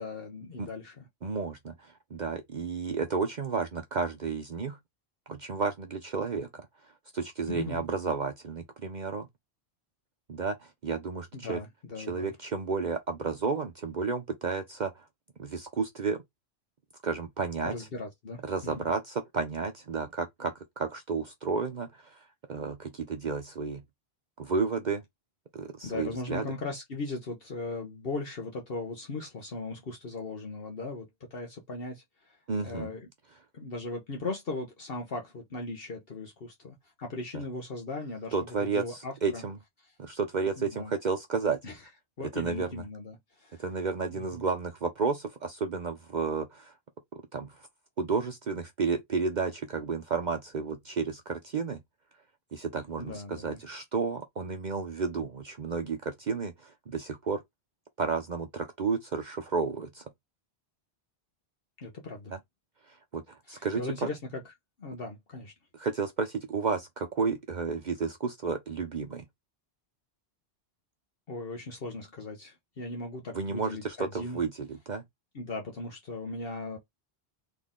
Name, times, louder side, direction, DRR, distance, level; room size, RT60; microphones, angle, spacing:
voice 1, 0.0-1.1 7.5-7.8 11.3-12.3 17.6-18.9 25.8-32.4 32.6-33.1 33.5-38.3 38.6-39.4 39.8-39.9 40.6-40.9 41.6-41.8 42.2-43.6 44.1-44.4 53.0-53.6 61.8-62.3 63.5-64.4 64.8-65.5 71.3-74.4 75.3-76.8, left 3 dB, 60° left, 1.3 m, -38 dB
voice 2, 1.2-4.8 5.3-6.7 7.1-9.3 10.3-11.6 12.1-15.1 15.4-16.2 17.0-17.7 18.4-22.2 22.5-23.8 24.4-25.0 25.5-26.4 32.5-32.9 38.3-39.6 40.0-41.6 42.3-42.7 43.6-46.7 47.3-47.7 48.0-51.8 52.5-57.4 58.0-60.0 62.9-64.1 65.7-69.2 73.3-75.0, right 4 dB, 50° right, 0.8 m, -32 dB
4.2 x 3.5 x 3.6 m
omnidirectional pair, 1.1 m